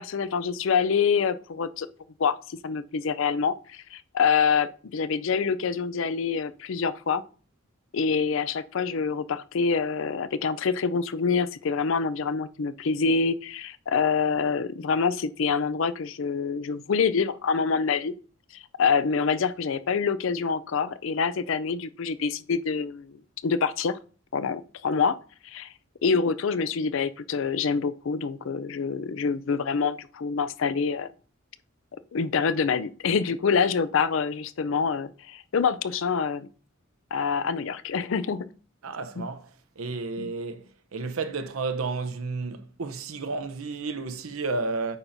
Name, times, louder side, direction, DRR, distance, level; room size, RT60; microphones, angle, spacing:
voice 1, 0.0-1.9 2.2-7.2 7.9-18.1 18.5-24.0 24.3-25.2 25.4-25.7 26.0-31.1 32.1-36.5 37.1-38.5 39.2-39.3 40.2-40.3, left 5 dB, 65° left, 0.4 m, -26 dB
voice 2, 38.8-45.0, right 3 dB, 85° right, 0.8 m, -32 dB
9.0 x 5.6 x 2.6 m
head